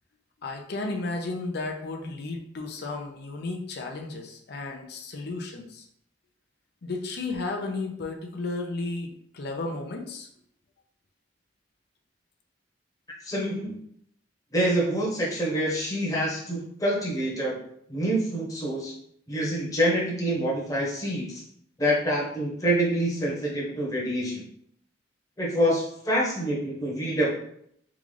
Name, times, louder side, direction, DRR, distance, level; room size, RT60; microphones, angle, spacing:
voice 1, 0.4-5.9 6.8-10.3, left 3 dB, 60° left, 2 dB, 0.5 m, -33 dB
voice 2, 13.2-13.8 14.5-17.6 17.9-18.9 19.3-21.4 21.8-24.4 25.4-27.3, equal, 20° left, -4 dB, 1.0 m, -26 dB
3.7 x 2.4 x 3.2 m, 0.68 s
head